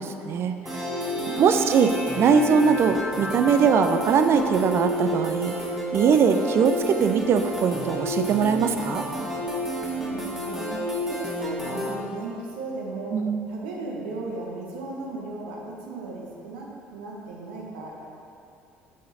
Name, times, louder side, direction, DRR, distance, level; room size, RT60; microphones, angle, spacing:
voice 1, 0.0-0.9 1.3-5.5 5.9-9.0 13.1-13.5, right 6 dB, 45° right, 8 dB, 0.5 m, -21 dB
sound 1, 0.7-11.9, equal, 5° right, 1.4 m, -30 dB
voice 2, 1.1-1.5 10.0-10.7 11.0-13.2 13.5-17.9, right 3 dB, 70° right, -2 dB, 1.1 m, -36 dB
6.4 x 5.6 x 4.2 m, 2.6 s
hypercardioid pair, 60°, 6 cm